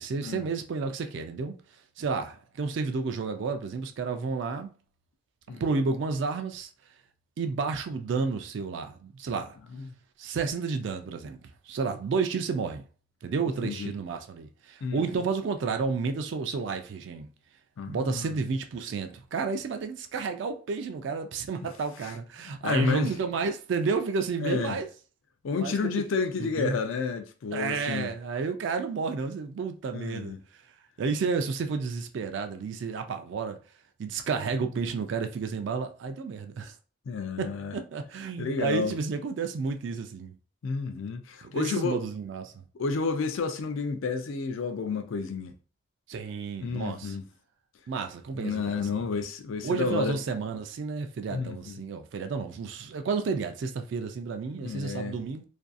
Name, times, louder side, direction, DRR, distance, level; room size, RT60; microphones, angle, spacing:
voice 1, 0.0-1.6 2.0-4.7 5.5-6.7 7.4-9.6 10.2-12.8 13.2-17.3 17.9-24.9 25.6-25.8 26.4-26.8 27.5-30.3 31.0-33.6 34.0-36.7 37.4-40.3 41.4-42.6 46.1-47.2 47.9-49.0 49.6-55.4, right 5 dB, 60° right, 0.3 m, -31 dB
voice 2, 17.8-18.3 22.5-23.1 24.4-24.8 25.4-28.1 29.9-30.4 37.1-37.7 38.4-39.0 40.6-42.0 42.8-45.5 46.6-47.2 48.4-50.1 51.3-51.8 54.6-55.2, left 4 dB, 70° left, 0.4 m, -30 dB
2.5 x 2.3 x 2.4 m
head